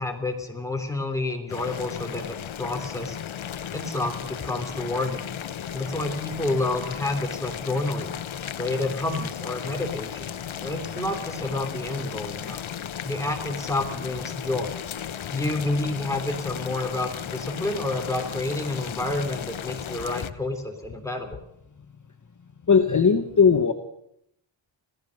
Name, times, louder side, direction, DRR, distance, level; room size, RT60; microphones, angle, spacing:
voice 1, 0.0-3.2 3.7-5.3 5.7-8.2 8.6-12.6 13.0-14.8 15.3-21.4, left 2 dB, 5° left, 3 dB, 3.3 m, -29 dB
Boiling, 1.5-20.3, left 9 dB, 75° left, 0.9 m, -35 dB
voice 2, 22.7-23.7, left 6 dB, 40° left, 6 dB, 1.3 m, -18 dB
26.0 x 16.5 x 6.6 m, 0.74 s
wide cardioid pair, 160°, 48 cm